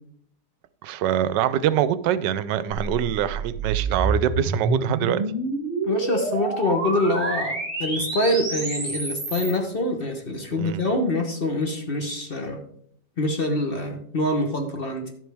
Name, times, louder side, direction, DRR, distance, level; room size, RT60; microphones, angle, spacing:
voice 1, 0.8-5.2 10.6-10.8, right 11 dB, 80° right, 1.2 m, -24 dB
sound 1, 2.8-9.6, right 2 dB, 35° right, 2.6 m, -28 dB
voice 2, 5.8-12.6 13.2-15.1, left 1 dB, 40° left, 1.0 m, -25 dB
12.0 x 7.8 x 3.4 m
omnidirectional pair, 1.9 m